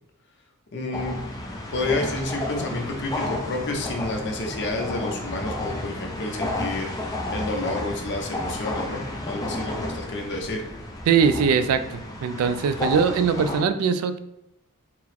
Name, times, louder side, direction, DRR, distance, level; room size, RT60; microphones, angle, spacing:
voice 1, 0.7-1.2 1.7-6.9 7.3-10.6, left 2 dB, 55° left, 2 dB, 0.7 m, -30 dB
sound 1, 0.9-13.6, left 2 dB, 15° left, 0.5 m, -32 dB
voice 2, 11.1-14.2, right 6 dB, 75° right, 12 dB, 0.3 m, -21 dB
4.5 x 2.1 x 4.1 m, 0.85 s
head